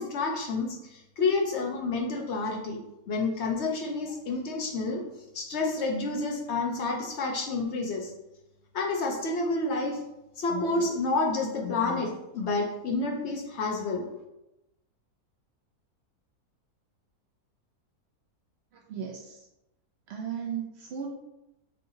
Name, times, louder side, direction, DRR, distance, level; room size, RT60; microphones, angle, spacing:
voice 1, 0.0-5.1 5.3-8.1 8.7-10.0 10.4-14.1, left 3 dB, 60° left, 1 dB, 0.7 m, -29 dB
voice 2, 18.7-19.5 20.1-21.1, right 7 dB, 80° right, 0 dB, 0.5 m, -36 dB
5.6 x 2.7 x 2.7 m, 0.90 s
omnidirectional pair, 1.7 m